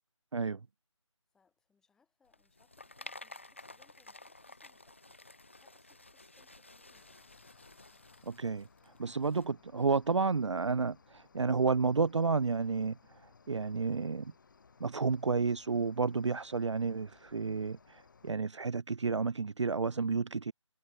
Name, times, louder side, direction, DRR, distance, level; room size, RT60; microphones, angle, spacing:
voice 1, 1.3-7.3, left 5 dB, 5° left, 2.6 m, -73 dB
sound 1, 2.3-9.4, left 2 dB, 25° left, 0.4 m, -53 dB
Cricket, 6.9-18.3, left 5 dB, 40° left, 2.6 m, -62 dB
voice 2, 8.3-8.7 9.0-13.0 13.5-14.3 14.8-20.5, right 4 dB, 65° right, 0.4 m, -31 dB
figure-of-eight pair, 155°, 17 cm